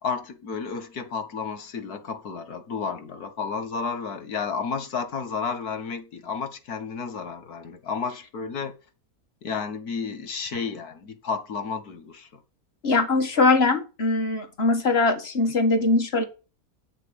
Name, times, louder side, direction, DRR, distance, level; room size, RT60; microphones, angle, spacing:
voice 1, 0.0-8.7 9.4-12.3, left 5 dB, 85° left, 1.9 m, -32 dB
voice 2, 12.8-16.2, left 3 dB, 45° left, 1.9 m, -21 dB
8.9 x 6.4 x 8.3 m
omnidirectional pair, 1.6 m